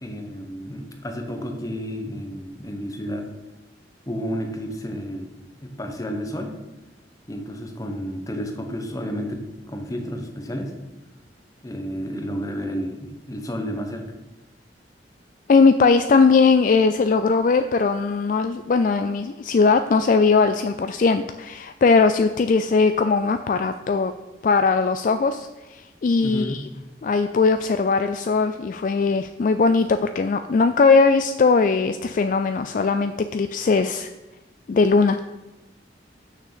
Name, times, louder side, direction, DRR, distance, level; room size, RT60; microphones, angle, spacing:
voice 1, 0.0-3.3 4.1-5.3 5.6-6.6 7.3-9.4 9.7-10.8 11.6-14.1 26.2-26.7, equal, 20° left, 4 dB, 1.0 m, -31 dB
voice 2, 15.5-24.1 24.4-26.6 27.0-34.1 34.7-35.2, left 4 dB, 45° left, 9 dB, 0.3 m, -19 dB
6.6 x 6.2 x 6.9 m, 1.0 s
head